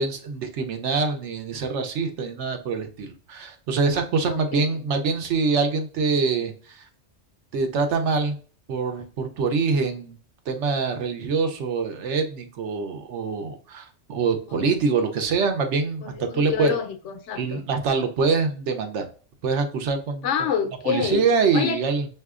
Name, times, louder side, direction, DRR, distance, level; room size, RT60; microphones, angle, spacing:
voice 1, 0.0-6.8 7.5-8.3 8.7-10.2 10.5-16.7 17.4-19.0 19.4-20.3 20.8-22.1, right 4 dB, 80° right, 1.0 m, -24 dB
voice 2, 4.3-4.6 16.1-17.6 20.2-21.3 21.5-21.8, left 8 dB, 85° left, 0.9 m, -27 dB
5.6 x 2.7 x 2.4 m
omnidirectional pair, 1.2 m